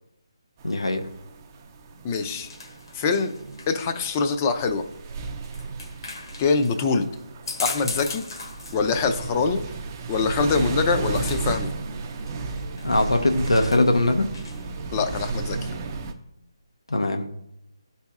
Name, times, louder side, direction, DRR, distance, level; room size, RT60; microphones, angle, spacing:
voice 1, 0.6-1.0 12.8-14.3 16.9-17.3, left 2 dB, 85° left, 4 dB, 0.6 m, -21 dB
sound 1, 0.6-16.1, right 3 dB, 30° right, 0.5 m, -34 dB
sound 2, 1.8-14.8, left 3 dB, 60° left, 1.2 m, -40 dB
voice 2, 2.0-2.5 2.9-3.3 3.7-4.8 6.4-7.1 7.6-8.2 8.7-9.6 10.1-11.7 14.9-15.7, left 4 dB, 25° left, 7 dB, 0.5 m, -24 dB
11.5 x 4.1 x 2.4 m, 0.81 s
figure-of-eight pair, 150°, 3 cm